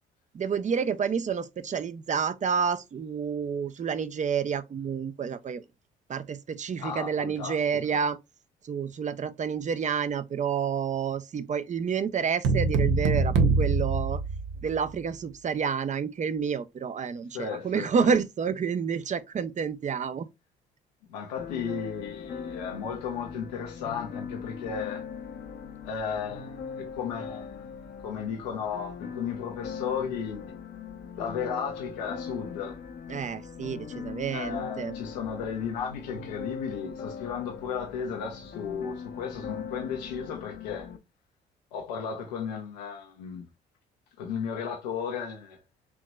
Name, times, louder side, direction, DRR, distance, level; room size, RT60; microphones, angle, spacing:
voice 1, 0.3-5.6 6.1-8.2 8.6-14.2 14.6-20.3 33.1-34.9, right 6 dB, 35° right, 0.6 m, -29 dB
voice 2, 6.8-7.6 7.9-8.0 17.3-18.1 21.1-25.1 25.8-27.7 28.0-30.5 31.2-32.8 34.3-40.9 41.7-43.5 44.2-45.6, left 7 dB, 90° left, 1.0 m, -34 dB
sound 1, 12.4-15.0, right 3 dB, 70° right, 0.8 m, -24 dB
sound 2, 21.4-41.0, left 6 dB, 50° left, 0.8 m, -40 dB
4.6 x 3.0 x 2.2 m
hypercardioid pair, 60°, 21 cm